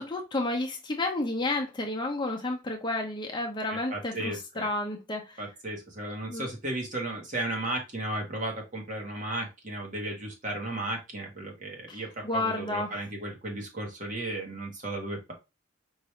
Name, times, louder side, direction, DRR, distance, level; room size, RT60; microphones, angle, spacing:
voice 1, 0.0-5.4 6.3-6.5 11.9-12.9, left 2 dB, 25° left, 0.7 m, -31 dB
voice 2, 3.7-4.7 5.4-15.3, right 1 dB, 40° right, 1.2 m, -35 dB
4.7 x 2.6 x 3.1 m
head